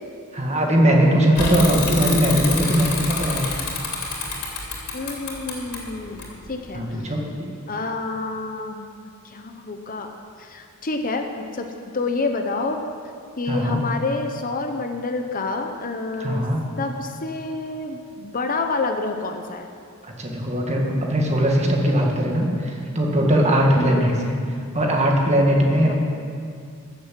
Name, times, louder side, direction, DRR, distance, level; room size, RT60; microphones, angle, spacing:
voice 1, 0.3-3.5 6.7-7.5 13.5-13.8 16.2-16.6 20.2-24.4 24.7-25.9, equal, 30° right, 0 dB, 1.8 m, -20 dB
Bicycle / Mechanisms, 1.3-6.8, left 4 dB, 85° left, 2.9 m, -28 dB
voice 2, 1.6-1.9 4.9-7.1 7.7-8.9 9.2-11.7 11.9-12.8 13.4-16.4 16.8-19.7 23.8-24.2 25.8-25.9, left 3 dB, 40° left, 5 dB, 0.8 m, -28 dB
14.0 x 7.5 x 7.6 m, 2.3 s
head